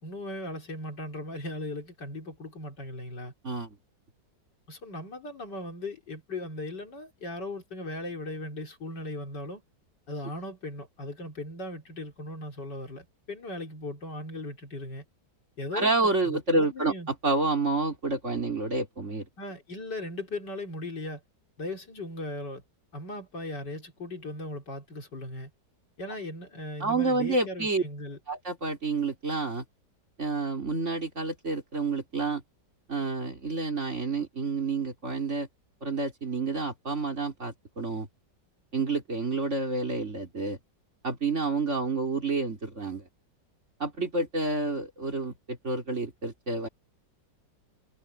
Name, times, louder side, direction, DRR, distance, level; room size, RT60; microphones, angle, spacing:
voice 1, 0.0-3.3 4.7-9.6 10.1-15.0 15.6-17.1 19.4-21.2 21.6-22.6 22.9-25.5 26.0-28.2, left 1 dB, 75° left, 4.3 m, -38 dB
voice 2, 3.4-3.8 15.7-16.9 17.2-19.3 26.8-27.8 28.3-29.6 30.2-32.4 32.9-35.5 35.8-38.1 38.7-40.6 41.0-43.0 43.8-46.7, right 3 dB, 40° right, 3.6 m, -29 dB
omnidirectional pair, 1.9 m